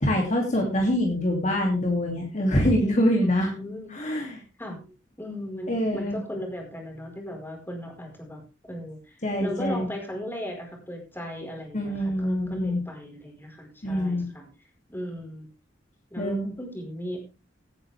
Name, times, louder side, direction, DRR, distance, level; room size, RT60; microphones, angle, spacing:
voice 1, 0.0-3.5 3.9-4.4 5.7-6.2 9.2-9.9 11.7-12.8 13.8-14.3 16.2-16.5, equal, 40° left, 1 dB, 2.8 m, -25 dB
voice 2, 3.2-3.9 4.6-4.8 5.2-14.5 14.9-15.5 16.1-17.2, equal, 10° left, 1 dB, 4.7 m, -37 dB
17.0 x 9.8 x 3.5 m, 0.29 s
head